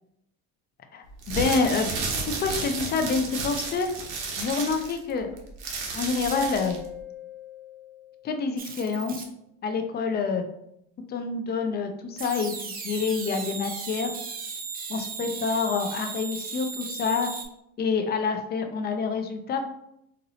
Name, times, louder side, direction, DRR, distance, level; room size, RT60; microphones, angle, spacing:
voice 1, 0.9-1.9 2.4-3.9 4.4-5.3 5.9-6.8 8.2-9.2 9.6-10.4 11.1-14.1 14.9-17.3 17.8-19.7, left 4 dB, 30° left, 6 dB, 0.5 m, -27 dB
sound 1, 1.1-6.9, right 4 dB, 65° right, 0.9 m, -32 dB
Mallet percussion, 6.3-8.8, left 9 dB, 50° left, 1.3 m, -41 dB
sound 2, 8.6-9.2 12.2-17.4, right 5 dB, 25° right, 0.5 m, -36 dB
4.2 x 2.6 x 2.7 m, 0.77 s
cardioid pair, 120°, 34 cm